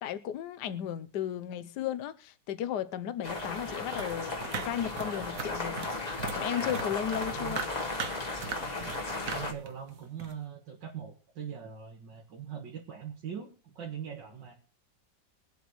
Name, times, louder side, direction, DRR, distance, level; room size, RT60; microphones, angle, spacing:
voice 1, 0.0-5.9 6.3-7.6, left 10 dB, 70° left, 1.3 m, -35 dB
sound 1, 3.2-9.5, left 2 dB, 25° left, 1.4 m, -35 dB
sound 2, 3.9-6.4 6.7-9.0 9.3-10.3, right 6 dB, 55° right, 1.3 m, -39 dB
voice 2, 9.3-14.5, right 8 dB, 80° right, 2.2 m, -41 dB
22.5 x 8.1 x 3.1 m
omnidirectional pair, 1.9 m